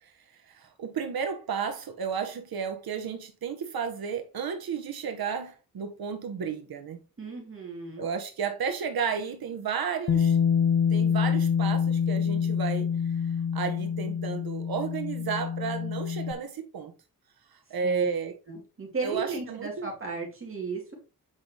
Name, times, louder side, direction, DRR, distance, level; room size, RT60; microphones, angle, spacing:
voice 1, 0.0-7.0 8.0-10.4 10.9-13.3 13.5-16.9 17.5-18.4 19.0-19.9, right 6 dB, 90° right, 1.2 m, -33 dB
voice 2, 7.2-8.1 17.8-18.0 18.5-20.9, right 4 dB, 35° right, 3.1 m, -35 dB
Bass guitar, 10.1-16.3, left 7 dB, 55° left, 0.7 m, -26 dB
8.7 x 5.6 x 3.4 m
wide cardioid pair, 135°, 35 cm